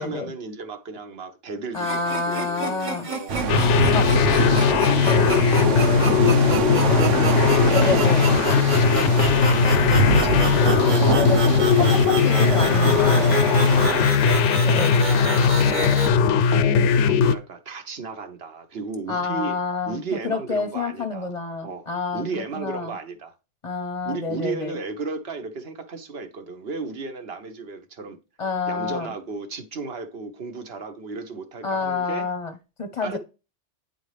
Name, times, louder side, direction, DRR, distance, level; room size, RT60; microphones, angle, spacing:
voice 1, 0.0-12.0 13.7-14.5 14.9-16.1 17.0-19.6 19.9-21.3 21.6-23.3 24.0-28.2 28.7-32.3 33.0-33.2, right 4 dB, 55° right, 1.2 m, -35 dB
voice 2, 1.7-3.1 3.9-4.1 5.0-5.3 7.7-8.3 11.1-11.4 11.8-13.4 14.6-14.9 19.1-22.9 23.6-24.7 28.4-29.1 31.6-32.5 32.8-33.2, left 4 dB, 30° left, 0.8 m, -28 dB
sound 1, 1.7-16.1, right 3 dB, 40° right, 1.4 m, -31 dB
sound 2, 3.3-14.0, right 5 dB, 80° right, 1.2 m, -25 dB
sound 3, 3.5-17.3, left 6 dB, 75° left, 0.9 m, -19 dB
9.8 x 4.0 x 3.3 m
omnidirectional pair, 1.2 m